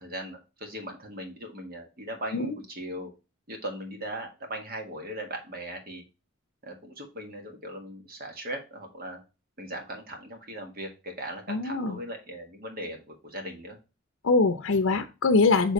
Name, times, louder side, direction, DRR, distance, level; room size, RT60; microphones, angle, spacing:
voice 1, 0.0-3.1 3.5-6.0 6.6-9.2 9.6-13.8, right 1 dB, 50° right, 4 dB, 1.5 m, -39 dB
voice 2, 11.5-12.0 14.2-15.7, left 3 dB, 80° left, 8 dB, 0.6 m, -23 dB
6.7 x 3.5 x 4.1 m, 0.29 s
head